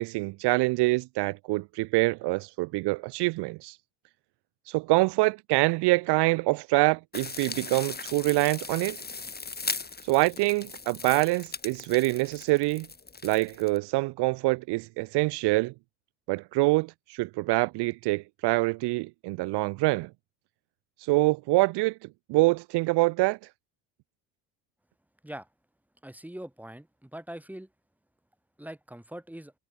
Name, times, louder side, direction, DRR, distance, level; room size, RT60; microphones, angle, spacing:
voice 1, 0.0-3.8 4.7-9.0 10.0-12.9 13.2-15.7 16.3-20.1 21.0-21.9 22.3-23.4, right 22 dB, 60° right, 0.8 m, -25 dB
sound 1, 7.1-13.8, left 4 dB, 20° left, 6.7 m, -38 dB
voice 2, 26.0-27.7 28.6-29.5, right 1 dB, 5° right, 3.9 m, -42 dB
supercardioid pair, 90°, 45 cm